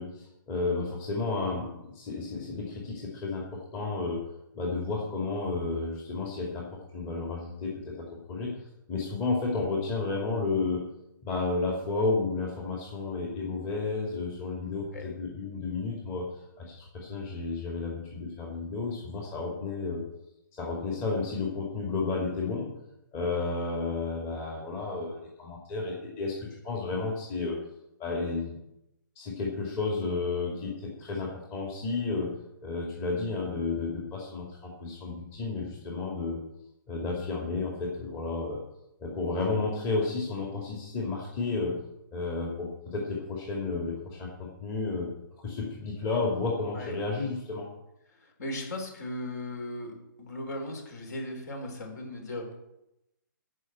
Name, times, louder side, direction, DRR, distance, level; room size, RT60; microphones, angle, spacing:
voice 1, 0.0-4.2 4.5-8.5 8.9-10.9 11.2-16.3 16.6-20.0 20.5-22.7 23.1-27.6 28.0-28.6 29.2-32.3 32.6-36.4 36.9-38.6 39.0-41.8 42.1-45.1 45.4-47.7, left 3 dB, 25° left, -2 dB, 2.5 m, -32 dB
voice 2, 48.1-52.4, left 1 dB, 55° left, 3 dB, 4.2 m, -37 dB
14.5 x 5.5 x 8.2 m, 0.88 s
figure-of-eight pair, 130°, 11 cm